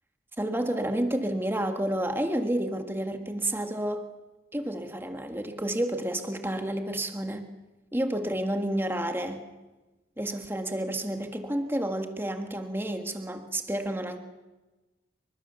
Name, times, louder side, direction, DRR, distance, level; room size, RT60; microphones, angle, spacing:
voice 1, 0.4-4.1 4.5-7.5 7.9-9.5 10.2-14.2, right 1 dB, 10° right, 5 dB, 1.7 m, -30 dB
28.0 x 24.5 x 7.0 m, 1.2 s
head